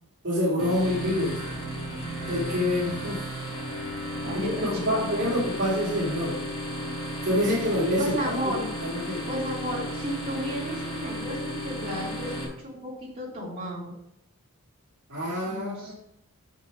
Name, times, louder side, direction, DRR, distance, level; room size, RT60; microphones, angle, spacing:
voice 1, 0.2-1.4 2.3-3.2 4.3-6.4 7.2-8.3 8.8-9.2 15.1-15.9, left 1 dB, 55° right, -7 dB, 2.5 m, -27 dB
sound 1, 0.6-12.4, equal, 25° left, 3.9 m, -34 dB
voice 2, 4.2-5.3 8.0-8.7 9.3-13.9 15.4-15.9, equal, 25° right, -7 dB, 3.8 m, -33 dB
7.4 x 6.5 x 4.9 m, 0.79 s
head